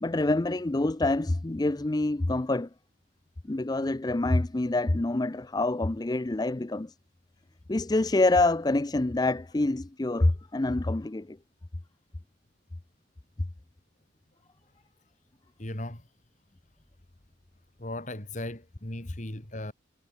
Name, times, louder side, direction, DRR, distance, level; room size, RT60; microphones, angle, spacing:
voice 1, 0.0-2.7 3.5-6.9 7.7-11.4, left 2 dB, 20° left, 0.5 m, -26 dB
voice 2, 15.6-16.0 17.8-19.7, left 1 dB, 40° left, 3.0 m, -37 dB
head